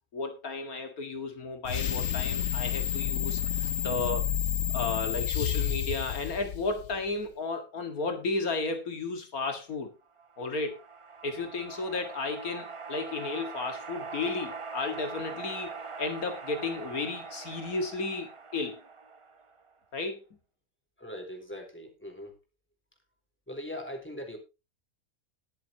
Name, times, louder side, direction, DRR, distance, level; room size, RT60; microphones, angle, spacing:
voice 1, 0.1-4.3 4.7-9.9 10.4-10.7 11.2-15.7 16.0-18.8 19.9-20.2, left 3 dB, 85° left, 6 dB, 2.3 m, -33 dB
sound 1, 1.6-7.1, left 8 dB, 60° left, 1.0 m, -30 dB
sound 2, 10.2-19.7, right 5 dB, 30° right, 0.7 m, -42 dB
voice 2, 21.0-22.4 23.5-24.4, left 1 dB, 10° left, 3 dB, 3.8 m, -40 dB
21.0 x 7.6 x 2.9 m, 0.27 s
omnidirectional pair, 1.5 m